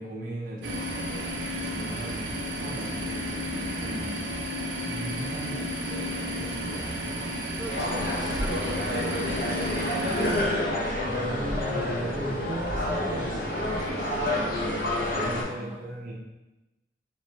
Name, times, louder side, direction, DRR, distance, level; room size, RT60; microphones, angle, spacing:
voice 1, 0.0-7.3 10.7-16.1, right 1 dB, 50° right, -3 dB, 0.6 m, -38 dB
sound 1, 0.6-10.4, equal, 85° right, 0.7 m, -32 dB
voice 2, 1.9-2.6 5.8-5.9 7.5-10.0 15.1-15.9, right 1 dB, 5° right, -6 dB, 0.8 m, -44 dB
sound 2, 7.7-15.4, left 1 dB, 55° left, 0.8 m, -28 dB
4.3 x 3.2 x 3.1 m, 1.0 s
head